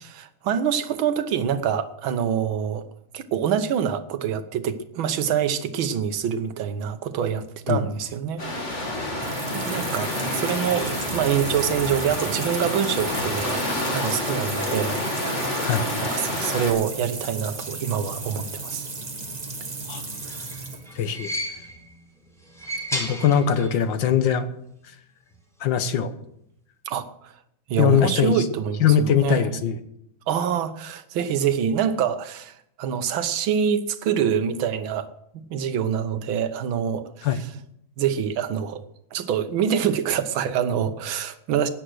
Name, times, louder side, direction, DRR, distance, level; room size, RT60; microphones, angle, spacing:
voice 1, 0.0-2.9 3.1-8.4 9.5-13.7 13.9-15.0 16.0-18.9 26.9-27.3 27.7-29.6 30.3-35.1 35.3-37.5 38.0-38.8 39.1-41.7, right 8 dB, 75° right, 10 dB, 1.8 m, -25 dB
sound 1, 8.4-16.7, left 1 dB, 35° left, 3.0 m, -28 dB
sound 2, 8.9-21.3, right 3 dB, 25° right, 1.2 m, -35 dB
sound 3, 20.0-21.9 22.4-23.8 24.1-24.2 25.3-25.4, equal, ahead, 3.9 m, -33 dB
voice 2, 21.0-21.3 22.9-24.5 25.6-26.1 27.8-28.3 28.8-29.8 37.2-37.4, left 8 dB, 65° left, 11 dB, 1.7 m, -21 dB
16.5 x 10.5 x 6.4 m, 0.75 s
omnidirectional pair, 2.2 m